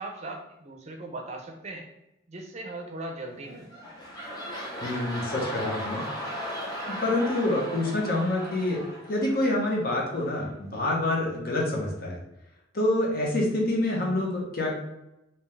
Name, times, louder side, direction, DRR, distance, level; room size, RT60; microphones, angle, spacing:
voice 1, 0.0-1.8 2.3-3.9, right 2 dB, 35° right, 2 dB, 0.5 m, -39 dB
sound 1, 3.4-9.9 10.5-10.6, equal, 20° left, 0.7 m, -37 dB
voice 2, 4.8-6.0 6.9-8.8 9.1-12.2 12.7-14.8, left 1 dB, 50° left, -2 dB, 0.8 m, -27 dB
3.4 x 2.8 x 3.2 m, 0.88 s
head